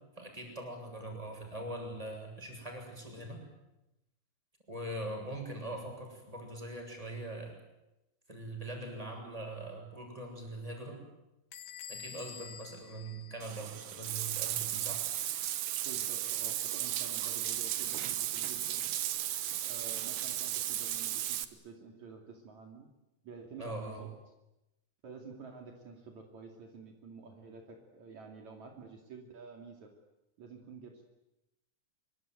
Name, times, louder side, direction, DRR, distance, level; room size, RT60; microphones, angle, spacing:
voice 1, 0.2-3.4 4.7-7.5 8.3-11.0 11.9-15.0 23.6-24.0, right 1 dB, 10° right, 2 dB, 7.1 m, -42 dB
Bell / Door, 11.5-14.0, left 7 dB, 50° left, 1.6 m, -48 dB
Bathtub (filling or washing), 13.4-21.4, right 12 dB, 85° right, 2.8 m, -35 dB
voice 2, 15.8-18.9 19.6-22.9 23.2-24.1 25.0-29.9 30.4-31.1, right 4 dB, 65° right, 2 dB, 3.9 m, -50 dB
25.0 x 24.0 x 9.2 m, 0.92 s
omnidirectional pair, 3.6 m